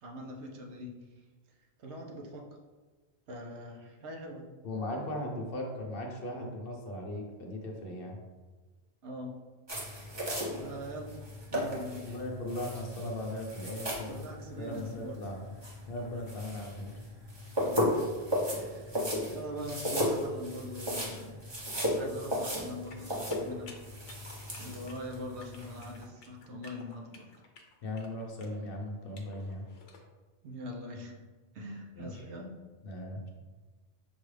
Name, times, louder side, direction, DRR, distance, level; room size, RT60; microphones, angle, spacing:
voice 1, 0.0-0.9 1.8-2.5 3.3-4.5 9.0-9.3 10.6-11.2 11.5-12.2 14.1-15.2 17.6-18.1 18.5-19.0 19.3-21.4 21.9-23.7 24.6-27.3 30.4-31.2 31.5-32.5, equal, 70° right, 1 dB, 1.0 m, -42 dB
voice 2, 4.6-8.2 12.0-14.3 14.6-15.4 15.9-16.9 27.8-29.7 31.9-32.2 32.8-33.3, left 1 dB, 60° left, 0 dB, 0.8 m, -38 dB
sound 1, 9.7-26.0, equal, 25° right, 0.7 m, -35 dB
sound 2, 22.9-30.0, left 3 dB, 85° left, 1.0 m, -54 dB
6.0 x 2.4 x 3.2 m, 1.3 s
omnidirectional pair, 1.2 m